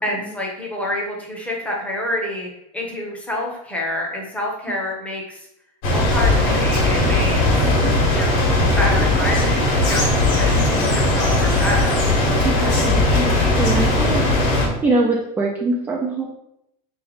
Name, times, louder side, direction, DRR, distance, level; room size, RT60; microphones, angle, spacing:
voice 1, 0.0-5.5 5.9-7.6 8.1-8.5 8.8-12.0, left 1 dB, 5° left, -2 dB, 0.8 m, -28 dB
sound 1, 5.8-14.7, left 2 dB, 65° left, 1.6 m, -18 dB
voice 2, 12.4-14.5 14.8-16.3, right 2 dB, 10° right, -2 dB, 0.4 m, -23 dB
3.9 x 3.3 x 3.9 m, 0.80 s
supercardioid pair, 170°, 19 cm